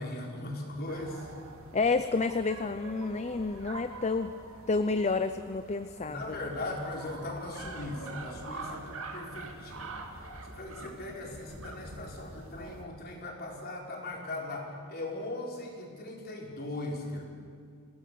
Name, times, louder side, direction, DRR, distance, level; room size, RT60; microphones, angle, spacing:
voice 1, 0.0-1.3 6.1-17.2, left 2 dB, 45° left, -1 dB, 4.4 m, -39 dB
sound 1, 0.9-12.9, right 3 dB, 75° right, 2.4 m, -45 dB
voice 2, 1.7-4.3 4.7-6.4, left 3 dB, 30° left, 10 dB, 0.6 m, -29 dB
27.0 x 17.5 x 6.9 m, 2.3 s
head